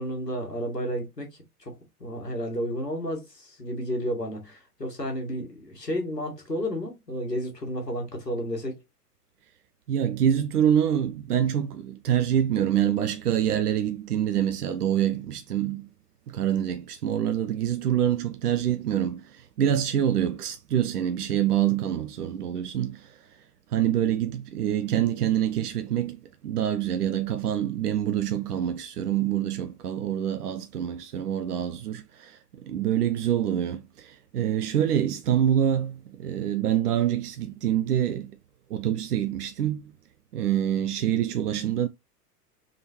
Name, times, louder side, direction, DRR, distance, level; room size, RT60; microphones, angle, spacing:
voice 1, 0.0-8.8, equal, 90° left, 1.5 m, -32 dB
voice 2, 9.9-15.9 16.3-23.3 23.7-38.4 38.7-39.9 40.3-41.9, right 10 dB, 75° right, 0.5 m, -26 dB
3.6 x 3.3 x 2.8 m
figure-of-eight pair, 95°, 47 cm